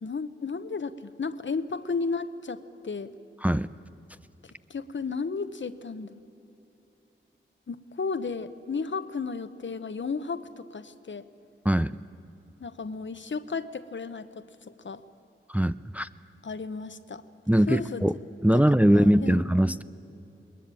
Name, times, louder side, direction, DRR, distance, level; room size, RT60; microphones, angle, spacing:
voice 1, 0.0-3.1 4.7-6.2 7.7-11.3 12.6-15.0 16.4-17.2 17.7-18.1 18.5-18.6 18.9-19.4, left 4 dB, 65° left, 12 dB, 0.9 m, -33 dB
voice 2, 15.5-16.1 17.5-18.2 18.4-19.8, right 1 dB, 5° right, 13 dB, 0.5 m, -21 dB
21.0 x 21.0 x 8.9 m, 2.9 s
wide cardioid pair, 55°, 21 cm